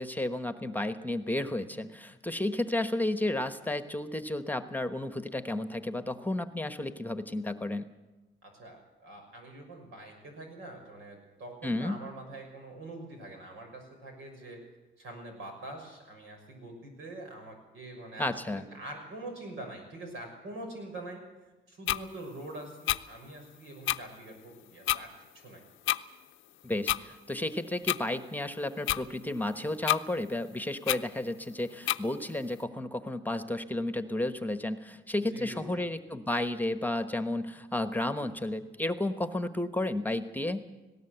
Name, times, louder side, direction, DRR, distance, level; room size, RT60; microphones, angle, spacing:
voice 1, 0.0-7.9 11.6-12.0 18.2-18.6 26.6-40.6, left 1 dB, 10° left, 10 dB, 1.1 m, -32 dB
voice 2, 8.4-14.6 15.0-21.2 21.7-25.1 25.4-25.6 35.3-35.8, right 2 dB, 85° right, 3 dB, 6.2 m, -44 dB
sound 1, 21.9-22.0 22.9-23.0 23.9-24.0 24.9-25.0 25.9-26.0 26.9-27.0 27.9-28.0 28.9-29.0 29.9-30.0 30.9-31.0 31.9-32.0, left 14 dB, 80° left, 0.6 m, -27 dB
19.0 x 17.5 x 8.0 m, 1.1 s
cardioid pair, 90°, 20 cm